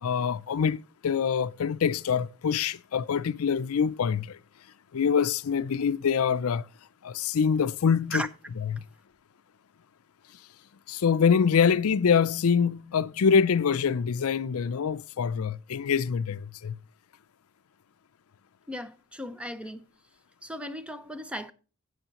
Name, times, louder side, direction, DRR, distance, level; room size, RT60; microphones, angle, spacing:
voice 1, 0.0-4.4 4.9-6.7 7.0-8.3 8.6-8.8 10.9-16.8, left 6 dB, 80° left, 0.5 m, -25 dB
voice 2, 18.7-19.9 20.4-21.5, equal, 5° right, 0.8 m, -36 dB
15.5 x 6.5 x 3.0 m
head